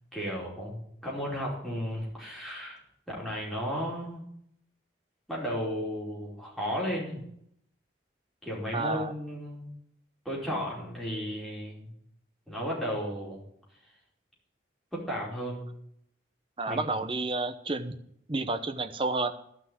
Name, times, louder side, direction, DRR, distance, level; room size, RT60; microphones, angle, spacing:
voice 1, 0.1-2.8 3.1-4.2 5.3-7.2 8.4-9.7 10.2-11.9 12.5-13.4 14.9-15.7 16.7-16.8, equal, ahead, -6 dB, 4.8 m, -34 dB
voice 2, 8.7-9.1 16.6-18.0 18.3-19.3, right 3 dB, 30° right, 7 dB, 0.9 m, -30 dB
12.5 x 6.1 x 9.4 m, 0.71 s
head